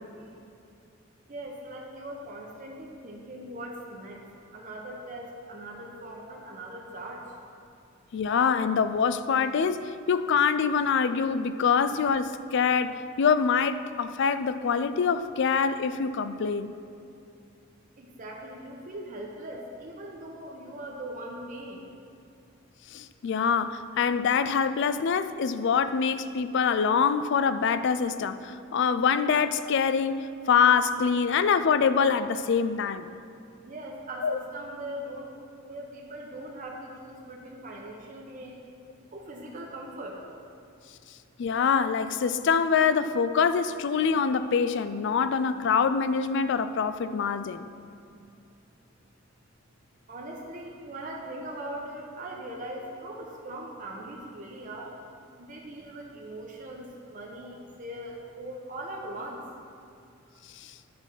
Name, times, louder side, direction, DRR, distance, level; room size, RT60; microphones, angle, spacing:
voice 1, 1.3-4.2 4.5-7.3 18.0-21.9 33.6-35.4 35.6-38.6 39.1-40.2 50.1-55.0 55.4-59.4, right 1 dB, 40° right, -1 dB, 0.8 m, -40 dB
voice 2, 8.1-16.7 22.9-33.1 34.2-34.4 41.4-47.7 60.6-60.7, left 6 dB, 60° left, 12 dB, 0.4 m, -25 dB
10.5 x 4.4 x 5.6 m, 2.5 s
head